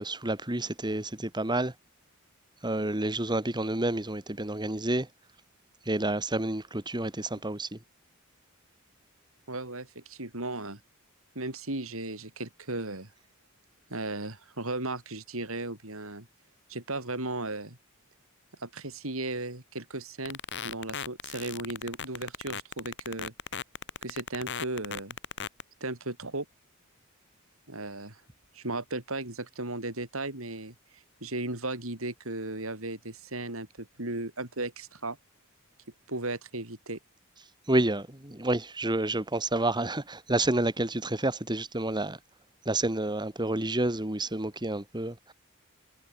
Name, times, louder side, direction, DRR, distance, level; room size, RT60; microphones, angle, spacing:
voice 1, 0.0-1.7 2.6-5.1 5.9-7.7 37.7-42.2 42.7-45.3, right 2 dB, 20° right, 2.3 m, -29 dB
voice 2, 9.5-10.8 11.3-13.1 13.9-16.3 16.7-17.8 18.6-20.4 20.6-23.3 24.0-25.2 25.8-26.4 27.7-28.2 28.5-35.2 36.1-37.0, right 2 dB, 65° right, 4.8 m, -36 dB
sound 1, 20.2-25.6, left 7 dB, 55° left, 7.0 m, -36 dB
head